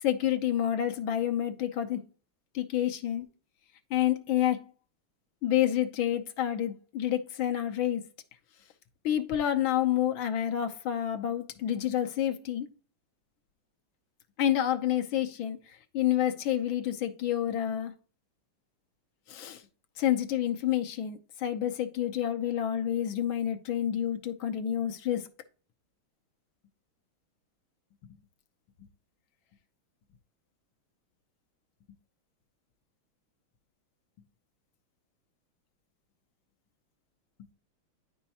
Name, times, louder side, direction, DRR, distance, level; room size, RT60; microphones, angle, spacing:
voice 1, 0.0-2.0 2.5-3.3 3.9-4.7 5.4-8.0 9.0-12.7 14.4-17.9 19.3-19.6 20.0-25.3, left 11 dB, 70° left, 1.5 m, -29 dB
10.0 x 5.5 x 2.8 m
omnidirectional pair, 2.4 m